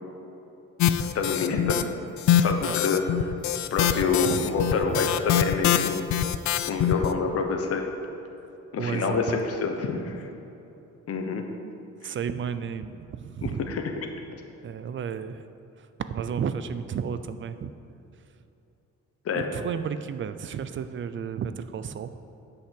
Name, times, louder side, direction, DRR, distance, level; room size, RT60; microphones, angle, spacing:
sound 1, 0.8-1.8 2.2-7.1, left 10 dB, 70° left, 0.5 m, -24 dB
voice 1, 1.1-1.8 2.3-3.3 3.7-6.1 6.6-7.9 8.7-10.3 11.1-11.5 12.0-12.1 13.4-13.8 19.2-19.5, left 5 dB, 55° left, 4 dB, 1.0 m, -27 dB
voice 2, 4.2-5.0 8.8-9.4 12.0-13.6 14.6-15.5 15.8-17.7 19.3-22.2, right 7 dB, 45° right, 11 dB, 0.5 m, -32 dB
10.0 x 5.6 x 7.6 m, 2.9 s
cardioid pair, 155°, 29 cm